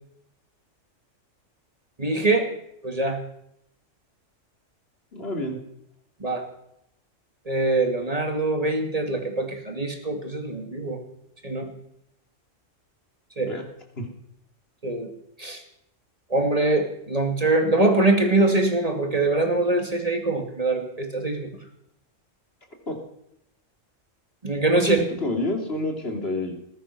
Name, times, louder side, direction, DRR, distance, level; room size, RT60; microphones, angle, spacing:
voice 1, 2.0-2.5 2.8-3.2 6.2-6.4 7.5-11.0 11.4-11.7 13.4-13.5 14.8-15.1 15.4-15.6 16.3-21.5 24.4-25.0, right 2 dB, 30° right, 4 dB, 2.6 m, -23 dB
voice 2, 5.1-5.6 13.5-13.6 14.0-14.1 22.9-23.0 24.7-26.5, left 1 dB, 50° left, 2 dB, 3.2 m, -28 dB
20.0 x 11.5 x 6.1 m, 0.76 s
omnidirectional pair, 1.3 m